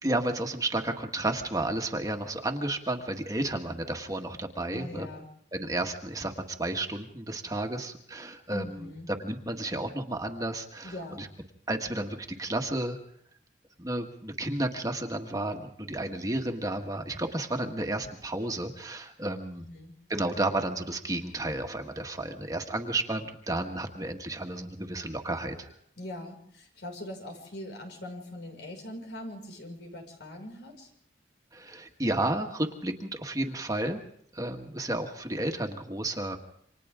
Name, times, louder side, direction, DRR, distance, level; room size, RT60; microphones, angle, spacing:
voice 1, 0.0-5.1 5.5-6.3 6.6-8.9 9.2-11.3 11.7-13.0 13.8-19.7 20.1-25.7 31.5-34.0 34.3-36.4, right 1 dB, 20° right, 3 dB, 1.7 m, -32 dB
voice 2, 4.7-5.3 8.5-9.1 10.8-11.2 19.6-19.9 26.0-30.9, left 1 dB, 85° left, 2 dB, 5.9 m, -41 dB
28.5 x 26.0 x 3.8 m, 0.67 s
head